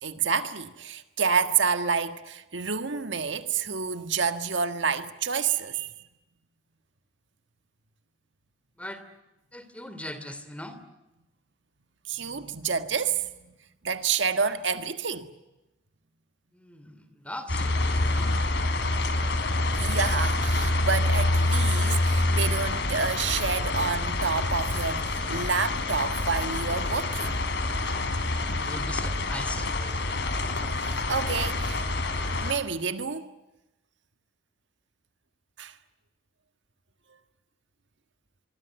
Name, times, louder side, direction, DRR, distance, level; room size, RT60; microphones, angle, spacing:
voice 1, 0.0-5.9 12.1-13.3 13.8-15.3 19.7-27.4 30.8-31.8 32.4-33.3 35.6-35.8, right 5 dB, 70° right, 1.7 m, -28 dB
voice 2, 9.5-10.8 16.5-18.4 28.6-29.7, left 1 dB, 5° left, 2.9 m, -40 dB
sound 1, 17.5-32.5, left 2 dB, 65° left, 3.4 m, -27 dB
25.0 x 23.5 x 9.2 m
head